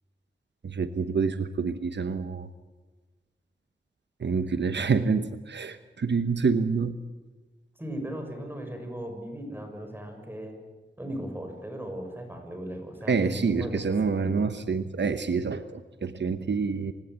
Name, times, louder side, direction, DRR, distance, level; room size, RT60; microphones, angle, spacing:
voice 1, 0.6-2.5 4.2-7.0 13.1-16.9, right 5 dB, 75° right, 10 dB, 1.0 m, -27 dB
voice 2, 7.8-10.5 11.0-14.3, right 1 dB, 10° right, 4 dB, 6.5 m, -37 dB
27.5 x 17.0 x 8.2 m, 1.3 s
wide cardioid pair, 100°, 18 cm